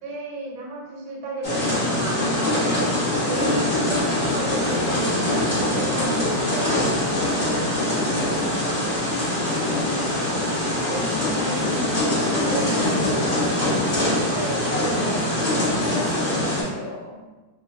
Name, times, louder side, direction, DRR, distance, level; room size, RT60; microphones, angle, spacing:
voice 1, 0.0-2.7 3.2-10.0 10.6-11.2 12.4-12.7 14.3-15.9, right 2 dB, 90° right, -1 dB, 1.4 m, -34 dB
sound 1, 1.4-16.6, left 1 dB, 40° left, 0.7 m, -23 dB
voice 2, 10.8-14.4 14.7-15.5 15.8-17.2, left 1 dB, 65° left, -6 dB, 1.2 m, -33 dB
3.1 x 2.1 x 2.6 m, 1.2 s
omnidirectional pair, 2.1 m